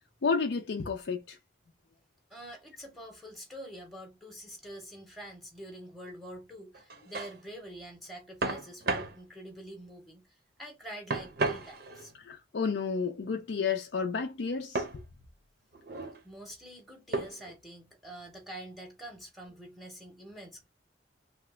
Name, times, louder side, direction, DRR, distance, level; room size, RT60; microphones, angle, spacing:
voice 1, 0.2-1.4 12.2-14.8, left 5 dB, 75° left, 0.5 m, -31 dB
voice 2, 2.3-10.2 10.6-12.1 16.2-20.7, equal, ahead, 0.8 m, -46 dB
sound 1, 6.7-7.4 8.4-9.2 11.1-12.1 14.7-15.0 15.7-16.2 17.1-17.5, right 3 dB, 60° right, 0.6 m, -33 dB
2.8 x 2.2 x 3.4 m
head